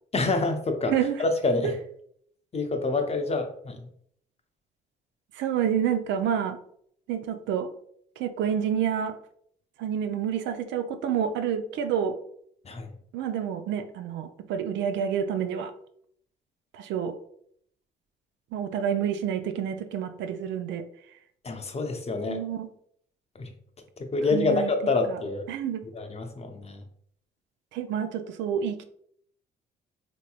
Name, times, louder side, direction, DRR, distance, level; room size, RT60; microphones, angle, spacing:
voice 1, 0.1-0.9 1.2-1.7 2.5-3.8 12.6-12.9 21.4-22.4 23.3-23.5 24.0-25.4 25.9-26.8, left 3 dB, 30° left, 5 dB, 0.7 m, -27 dB
voice 2, 0.9-1.2 1.6-1.7 5.3-6.6 7.1-7.7 8.2-9.2 9.8-12.2 13.1-15.7 16.7-17.2 18.5-20.9 22.3-22.7 24.3-24.7 25.1-25.2 25.5-25.9 27.7-28.8, right 8 dB, 70° right, 9 dB, 0.4 m, -28 dB
3.3 x 2.8 x 2.3 m, 0.65 s
hypercardioid pair, 55°, 20 cm